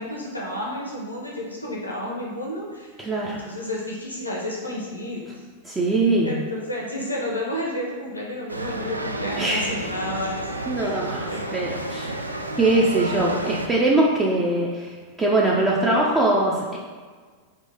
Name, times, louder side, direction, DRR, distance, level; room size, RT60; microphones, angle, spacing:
voice 1, 0.0-2.9 3.3-5.2 6.2-10.4 10.8-11.6, left 1 dB, 85° left, -3 dB, 0.9 m, -31 dB
voice 2, 3.0-3.4 5.6-6.4 9.4-9.6 10.7-12.1 12.6-16.8, right 2 dB, 15° right, -5 dB, 0.6 m, -22 dB
sound 1, 8.5-13.7, right 1 dB, 85° right, 0.3 m, -31 dB
3.7 x 2.8 x 3.9 m, 1.5 s
figure-of-eight pair, 90°, 0 cm